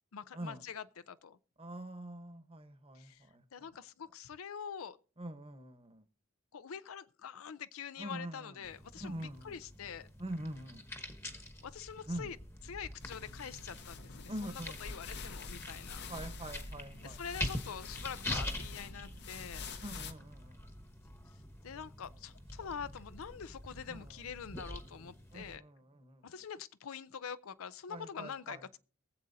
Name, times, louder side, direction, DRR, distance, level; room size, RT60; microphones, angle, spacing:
voice 1, 0.1-1.4 3.0-3.2 3.5-5.0 6.5-9.2 9.4-10.1 11.6-12.4 12.6-16.1 17.0-19.7 21.6-25.6 26.2-28.8, left 7 dB, 80° left, 0.5 m, -45 dB
voice 2, 1.6-3.7 5.2-6.0 8.0-8.6 9.0-9.5 10.2-10.8 12.1-12.3 14.3-15.0 16.1-17.5 19.8-20.6 21.7-21.9 22.6-22.7 23.9-24.2 25.3-26.3 27.9-28.8, right 1 dB, 25° right, 1.0 m, -44 dB
sound 1, 8.6-25.6, left 1 dB, 10° left, 1.0 m, -45 dB
sound 2, 13.0-20.1, left 4 dB, 50° left, 0.8 m, -47 dB
23.0 x 7.6 x 2.7 m
head